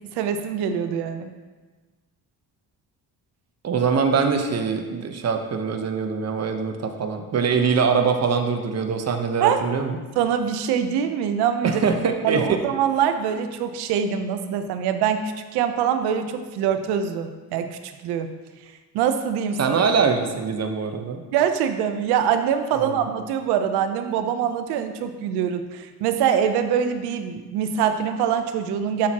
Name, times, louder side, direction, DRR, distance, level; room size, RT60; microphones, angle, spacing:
voice 1, 0.1-1.3 9.4-9.6 10.2-11.8 12.2-18.3 18.9-19.7 21.3-29.1, right 8 dB, 90° right, 8 dB, 0.8 m, -24 dB
voice 2, 3.6-10.0 11.6-12.6 19.6-21.2 22.8-23.0, right 5 dB, 40° right, 5 dB, 1.0 m, -23 dB
11.5 x 6.0 x 2.9 m, 1.3 s
cardioid pair, 90°, 38 cm